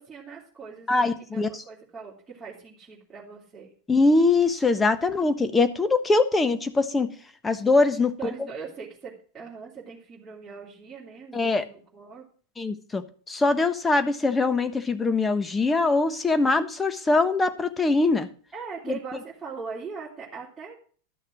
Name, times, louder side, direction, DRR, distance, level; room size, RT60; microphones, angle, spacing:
voice 1, 0.0-3.7 8.2-12.3 18.5-20.7, right 5 dB, 15° right, -6 dB, 3.1 m, -40 dB
voice 2, 0.9-1.6 3.9-7.1 7.4-8.1 11.3-11.6 12.6-18.3 18.9-19.0, left 3 dB, 15° left, 10 dB, 1.2 m, -22 dB
12.5 x 6.5 x 6.1 m, 0.43 s
figure-of-eight pair, 90°, 0 cm